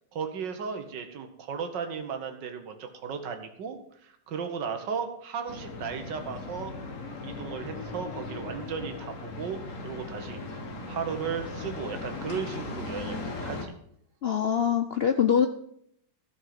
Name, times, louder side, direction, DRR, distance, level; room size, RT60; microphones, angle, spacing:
voice 1, 0.1-6.7 7.2-13.8, right 6 dB, 80° right, 6 dB, 1.9 m, -35 dB
sound 1, 5.5-13.7, left 3 dB, 45° left, 1.7 m, -38 dB
voice 2, 14.2-15.5, left 8 dB, 85° left, 8 dB, 0.5 m, -23 dB
13.0 x 6.6 x 7.6 m, 0.70 s
omnidirectional pair, 1.9 m